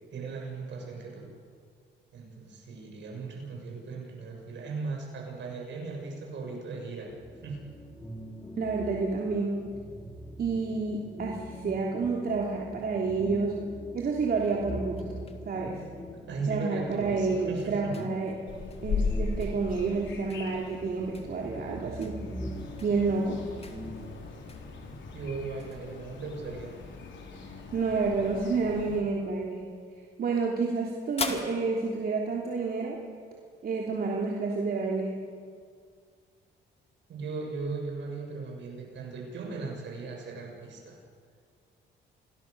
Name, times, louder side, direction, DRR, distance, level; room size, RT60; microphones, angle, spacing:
voice 1, 0.1-1.3 2.1-7.1 7.4-7.6 16.3-17.9 25.1-26.7 37.1-41.0, right 4 dB, 65° right, 0 dB, 7.1 m, -37 dB
sound 1, 7.1-24.2, equal, 10° left, 3.5 m, -42 dB
voice 2, 8.6-9.6 10.4-13.6 13.9-15.2 15.4-15.8 16.5-18.3 18.8-22.2 22.8-23.4 27.7-29.6 30.2-33.0 33.6-35.1, right 4 dB, 50° right, -1 dB, 3.1 m, -29 dB
sound 2, 14.3-33.1, left 4 dB, 30° left, 2.5 m, -46 dB
sound 3, 18.5-29.0, left 4 dB, 70° left, 4.1 m, -38 dB
28.0 x 19.0 x 6.9 m, 2.1 s
cardioid pair, 90°, 20 cm